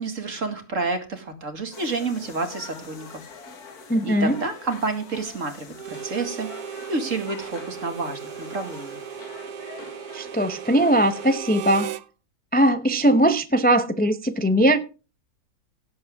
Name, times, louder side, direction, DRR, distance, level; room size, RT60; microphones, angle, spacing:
voice 1, 0.0-3.2 4.0-6.5 6.9-9.0, right 3 dB, 55° right, 2.5 m, -29 dB
sound 1, 1.7-11.4, left 5 dB, 75° left, 2.2 m, -44 dB
voice 2, 3.9-4.4 10.1-11.9 12.5-14.8, right 1 dB, 10° left, 0.6 m, -20 dB
Harmonica, 5.7-12.1, right 9 dB, 85° right, 1.3 m, -36 dB
17.5 x 7.8 x 3.6 m
omnidirectional pair, 1.6 m